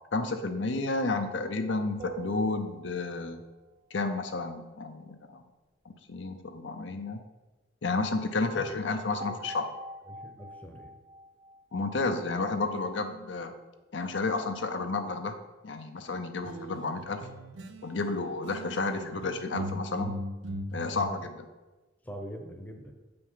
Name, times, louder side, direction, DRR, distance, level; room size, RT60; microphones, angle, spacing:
voice 1, 0.1-3.4 3.9-5.4 5.9-7.2 7.8-9.7 11.7-13.5 13.9-15.4 15.6-17.2 17.8-20.2 20.7-21.4, left 3 dB, 70° left, 7 dB, 0.7 m, -31 dB
sound 1, 2.0-3.5 9.2-12.5, right 2 dB, 40° right, 0.7 m, -45 dB
voice 2, 8.3-8.8 9.3-9.4 10.1-10.9 22.0-22.9, equal, 10° left, 2 dB, 0.9 m, -43 dB
sound 2, 16.4-18.1 18.4-21.3, equal, 80° right, 0.6 m, -39 dB
7.7 x 5.2 x 5.7 m, 1.2 s
head